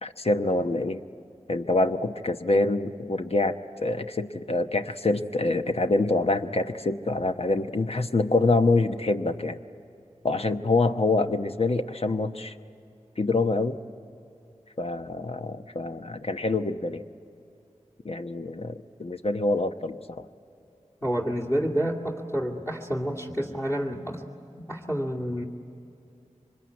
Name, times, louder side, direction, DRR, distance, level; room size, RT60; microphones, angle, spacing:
voice 1, 0.0-1.0 1.5-3.5 3.8-9.6 10.2-12.5 13.2-13.8 14.8-17.0 18.0-20.3, left 2 dB, 50° left, 7 dB, 1.0 m, -26 dB
voice 2, 21.0-24.2 24.7-25.4, equal, 20° left, -3 dB, 2.4 m, -29 dB
25.0 x 21.0 x 9.5 m, 2.6 s
wide cardioid pair, 45°, 13 cm